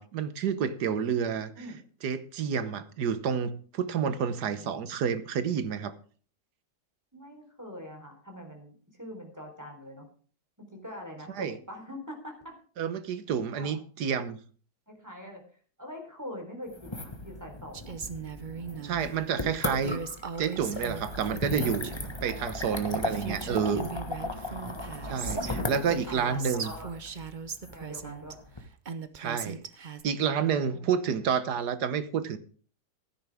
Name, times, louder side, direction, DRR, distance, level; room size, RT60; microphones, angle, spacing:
voice 1, 0.0-1.5 2.0-5.9 11.4-11.6 12.8-14.4 18.8-20.0 20.4-21.9 22.2-23.9 25.0-26.7 29.1-29.6 30.0-32.4, right 7 dB, 65° right, 1.5 m, -29 dB
voice 2, 7.1-10.1 10.6-12.5 13.5-13.8 14.9-15.4 15.8-17.9 18.6-19.1 22.3-23.0 25.4-26.9 27.7-28.4 30.7-30.9, equal, 10° right, 3.8 m, -44 dB
sound 1, 16.7-28.6, left 2 dB, 15° left, 1.3 m, -37 dB
Female speech woman speaking, 17.7-19.0 19.8-22.1 22.7-22.8 23.0-25.5 25.9-28.3 28.8-30.0, right 6 dB, 45° right, 0.6 m, -39 dB
15.5 x 10.0 x 3.5 m
omnidirectional pair, 1.9 m